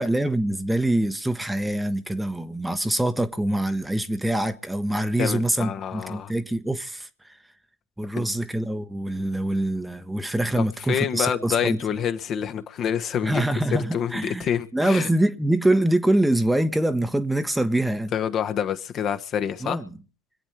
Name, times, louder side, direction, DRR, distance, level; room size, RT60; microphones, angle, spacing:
voice 1, 0.0-7.4 8.0-11.8 13.2-18.1 19.6-19.8, right 1 dB, 5° right, 1.1 m, -24 dB
voice 2, 5.2-6.3 8.1-8.3 10.6-13.4 13.7-15.1 18.1-19.8, left 8 dB, 40° left, 1.3 m, -27 dB
26.0 x 8.8 x 4.6 m
figure-of-eight pair, 75°, 0 cm